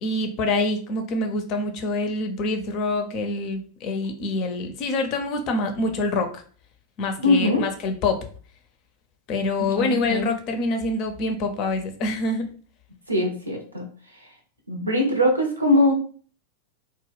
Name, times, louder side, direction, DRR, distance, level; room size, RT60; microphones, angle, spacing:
voice 1, 0.0-6.4 7.0-8.3 9.3-12.5, left 2 dB, 40° left, 6 dB, 0.5 m, -26 dB
voice 2, 7.2-7.6 9.6-10.3 13.1-13.9 14.7-15.9, left 1 dB, 80° right, 2 dB, 0.6 m, -22 dB
2.2 x 2.1 x 3.2 m, 0.43 s
figure-of-eight pair, 90°, 0 cm